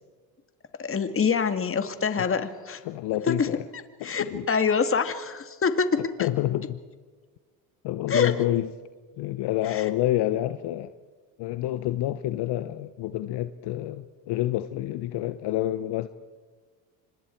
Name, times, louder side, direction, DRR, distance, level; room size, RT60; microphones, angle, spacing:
voice 1, 0.8-2.8 3.3-3.5 4.0-6.3 8.1-8.4 9.7-9.9, left 6 dB, 25° left, 9 dB, 2.1 m, -25 dB
voice 2, 2.8-3.6 4.0-4.5 6.2-6.8 7.8-8.7 9.2-11.0 11.4-16.1, left 14 dB, 55° left, 12 dB, 1.1 m, -28 dB
29.5 x 25.5 x 4.6 m, 1.4 s
supercardioid pair, 85°, 47 cm